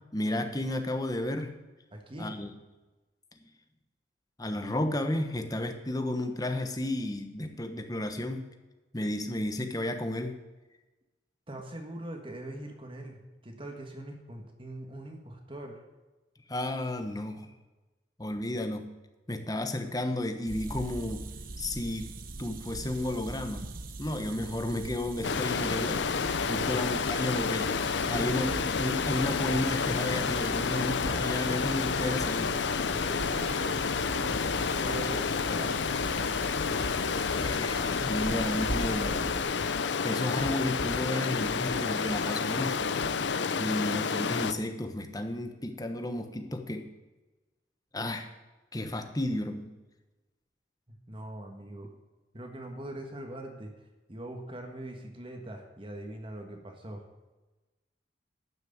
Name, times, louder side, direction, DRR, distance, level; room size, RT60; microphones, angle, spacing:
voice 1, 0.1-1.5 2.2-2.5 4.4-8.5 8.9-10.4 16.5-17.5 18.2-18.9 19.3-21.2 21.6-23.7 24.0-26.1 26.5-32.6 37.3-39.4 40.0-42.8 43.6-46.9 47.9-48.3 48.7-49.7, left 1 dB, 20° left, 6 dB, 1.1 m, -32 dB
voice 2, 1.9-2.4 11.5-15.8 26.6-27.1 28.1-28.6 32.9-35.9 51.1-51.9 52.3-53.7 54.1-57.0, right 1 dB, 30° right, 3 dB, 1.5 m, -42 dB
sound 1, 20.5-39.4, right 2 dB, 50° right, 0.9 m, -41 dB
Stream, 25.2-44.5, left 5 dB, 70° left, 0.6 m, -30 dB
sound 2, 28.8-43.3, equal, 10° right, 1.3 m, -55 dB
12.0 x 6.4 x 8.0 m, 1.1 s
head